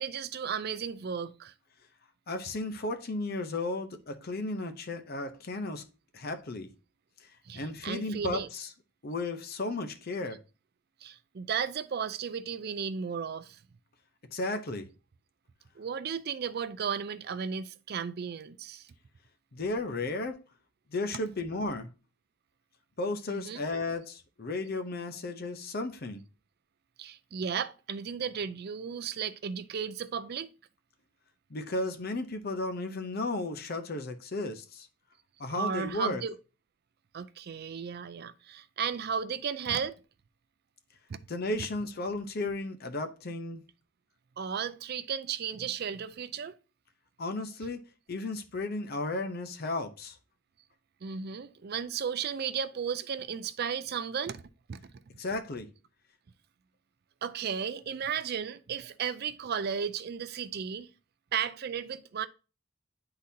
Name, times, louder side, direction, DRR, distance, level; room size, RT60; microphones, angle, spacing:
voice 1, 0.0-1.5 7.5-8.5 11.0-13.6 15.8-18.9 23.3-23.7 27.0-30.5 35.5-36.3 37.1-40.0 41.1-41.2 44.4-46.6 51.0-54.4 54.7-54.9 57.2-60.9 61.3-62.3, right 7 dB, 50° right, 0.4 m, -34 dB
voice 2, 2.3-5.8 6.1-6.7 7.5-8.7 9.0-10.4 14.3-14.9 19.5-20.4 20.9-21.9 23.0-26.2 31.5-34.9 35.4-36.2 41.3-43.6 47.2-47.8 48.1-50.2 55.2-55.7, left 2 dB, 50° left, 0.7 m, -34 dB
9.9 x 3.9 x 2.7 m
head